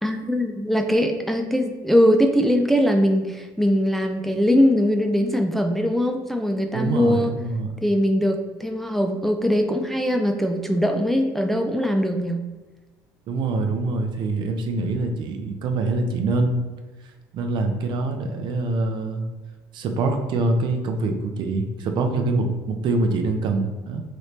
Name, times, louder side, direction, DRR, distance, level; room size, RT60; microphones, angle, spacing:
voice 1, 0.0-7.3 7.8-12.4, equal, ahead, 3 dB, 0.3 m, -21 dB
voice 2, 6.7-7.7 13.3-16.6 17.3-19.3 19.7-24.0, right 3 dB, 55° right, 5 dB, 0.5 m, -24 dB
3.1 x 2.6 x 3.2 m, 1.2 s
supercardioid pair, 85°, 9 cm